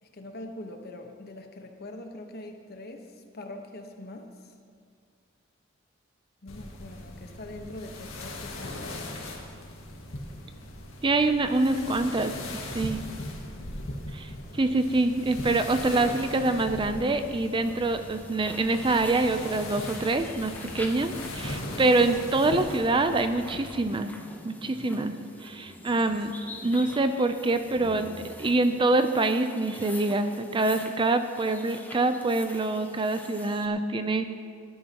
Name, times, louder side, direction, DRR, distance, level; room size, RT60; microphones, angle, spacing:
voice 1, 0.0-4.5 6.4-9.0 24.7-25.1, left 1 dB, 50° left, 4 dB, 1.2 m, -43 dB
sound 1, 6.5-24.0, left 1 dB, 90° left, 1.8 m, -39 dB
voice 2, 11.0-12.3 12.7-13.0 14.1-24.1 24.4-25.1 25.4-26.3 26.6-28.1 28.4-34.3, right 2 dB, 25° right, 9 dB, 0.5 m, -25 dB
sound 2, 15.5-33.7, left 2 dB, 10° left, 0.9 m, -47 dB
sound 3, 22.7-29.3, equal, 50° right, 2.8 m, -52 dB
18.5 x 11.5 x 3.0 m, 2.1 s
head